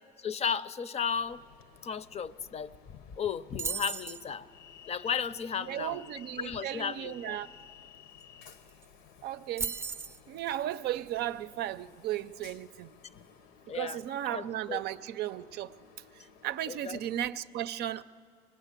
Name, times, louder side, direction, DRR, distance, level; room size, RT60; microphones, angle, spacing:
voice 1, 0.2-1.4 1.8-2.7 3.2-4.5 4.9-6.0 6.4-7.4 13.7-14.0 14.3-14.8 16.7-17.0, left 7 dB, 40° left, 0.6 m, -34 dB
Train, 1.1-17.3, left 7 dB, 90° left, 1.0 m, -56 dB
sound 1, 3.6-4.2 8.2-8.3 8.5-8.8 9.6-10.2, right 5 dB, 15° right, 0.6 m, -35 dB
voice 2, 5.7-7.5 9.2-9.8 10.3-12.9 13.7-15.7 16.1-18.0, right 12 dB, 75° right, 0.5 m, -35 dB
24.0 x 19.5 x 8.2 m
cardioid pair, 110°, 17 cm